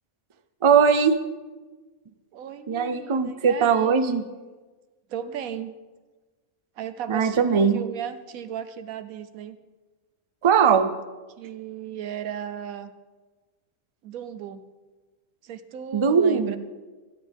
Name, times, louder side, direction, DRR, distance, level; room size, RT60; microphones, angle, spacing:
voice 1, 0.6-1.2 2.7-4.3 7.1-7.8 10.4-10.9 15.9-16.6, right 6 dB, 55° right, 10 dB, 0.3 m, -20 dB
voice 2, 2.3-4.0 5.1-5.8 6.8-9.6 11.4-12.9 14.0-14.6 15.4-16.6, right 9 dB, 75° right, 11 dB, 1.2 m, -36 dB
25.0 x 9.5 x 3.5 m, 1.3 s
omnidirectional pair, 1.5 m